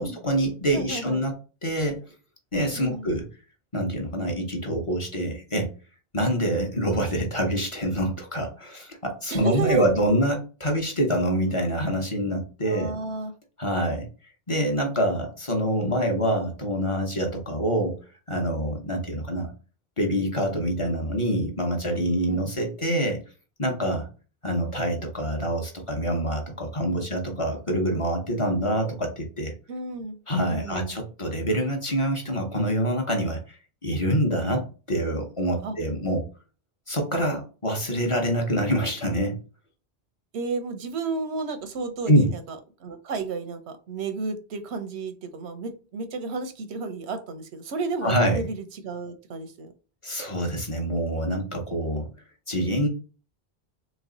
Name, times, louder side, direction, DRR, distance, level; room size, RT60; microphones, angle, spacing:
voice 1, 0.0-1.3 1.6-2.0 2.5-3.3 3.7-5.7 6.1-12.9 13.6-14.1 14.5-18.0 18.3-19.5 20.0-23.2 23.6-24.1 24.4-29.5 30.3-36.2 36.9-39.4 42.1-42.3 48.0-48.4 50.0-52.1 52.5-52.9, equal, 35° left, 2 dB, 0.8 m, -26 dB
voice 2, 0.7-1.2 2.8-3.1 9.3-9.9 12.6-13.3 22.3-22.5 27.0-27.1 29.7-30.2 30.5-31.0 35.6-35.8 40.3-49.7, right 4 dB, 85° right, 9 dB, 1.0 m, -32 dB
3.2 x 3.2 x 3.8 m, 0.36 s
omnidirectional pair, 1.1 m